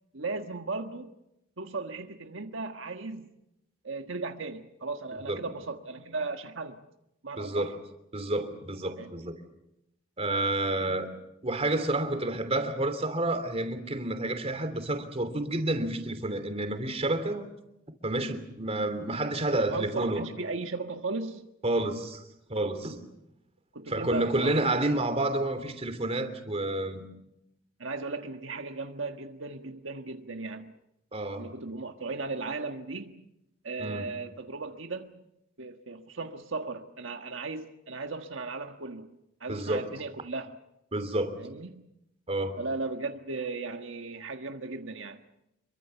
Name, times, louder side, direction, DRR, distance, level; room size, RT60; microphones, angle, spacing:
voice 1, 0.1-1.1 1.6-3.3 3.8-6.8 7.2-7.7 9.0-9.1 19.6-21.5 23.7-24.8 27.8-30.7 31.4-33.3 33.6-35.2 35.6-39.1 39.4-40.6 41.4-41.9 42.6-45.2, right 3 dB, 70° right, 1.5 m, -36 dB
voice 2, 7.4-7.8 8.1-9.4 10.2-11.1 11.4-17.5 18.0-20.2 21.6-22.2 22.5-23.0 23.9-27.0 31.1-31.5 33.8-34.1 39.5-39.9 40.9-41.4 42.3-42.6, right 2 dB, 30° right, 3.1 m, -29 dB
27.0 x 23.5 x 7.0 m
head